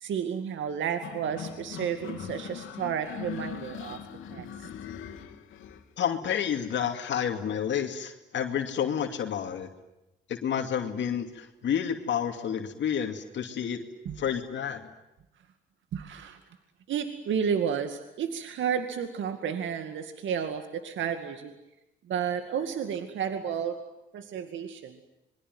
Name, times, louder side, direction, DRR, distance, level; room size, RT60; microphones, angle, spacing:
voice 1, 0.0-4.0 4.3-4.7 14.1-14.2 15.9-16.4 16.9-21.5 22.1-23.8 24.1-25.0, right 7 dB, 75° right, 8 dB, 2.2 m, -32 dB
sound 1, 1.0-5.8, left 9 dB, 85° left, 2.8 m, -41 dB
voice 2, 6.0-9.7 10.3-13.9 14.2-14.9, left 8 dB, 65° left, 5 dB, 2.6 m, -30 dB
26.5 x 22.5 x 9.4 m, 0.95 s
cardioid pair, 90°, 20 cm